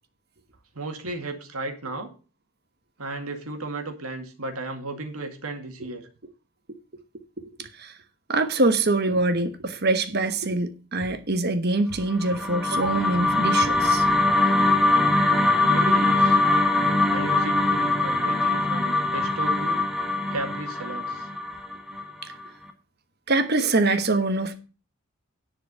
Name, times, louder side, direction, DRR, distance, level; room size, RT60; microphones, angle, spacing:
voice 1, 0.8-2.1 3.0-6.1 15.5-16.4 17.1-19.8 20.3-21.3, right 2 dB, 80° right, 2.1 m, -34 dB
voice 2, 8.3-14.0 22.2-22.3 23.3-24.5, right 2 dB, 45° right, 1.1 m, -24 dB
sound 1, 12.1-22.4, left 2 dB, ahead, 1.2 m, -22 dB
10.5 x 4.9 x 8.0 m
head